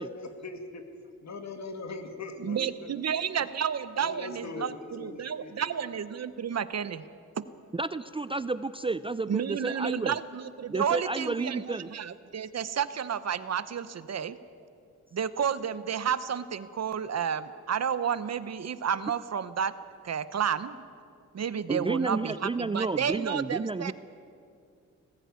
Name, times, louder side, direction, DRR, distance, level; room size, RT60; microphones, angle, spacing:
voice 1, 0.0-0.8 1.2-2.9 4.0-5.5, left 3 dB, 60° left, 6 dB, 2.3 m, -40 dB
voice 2, 2.4-7.0 7.4-7.5 9.3-14.4 15.1-19.7 20.0-20.9 21.3-23.9, right 8 dB, 55° right, 14 dB, 0.9 m, -31 dB
voice 3, 7.7-10.2 10.7-11.9 21.7-23.9, right 3 dB, 20° right, 14 dB, 0.4 m, -31 dB
19.5 x 15.0 x 9.5 m, 2.4 s
cardioid pair, 90°, 30 cm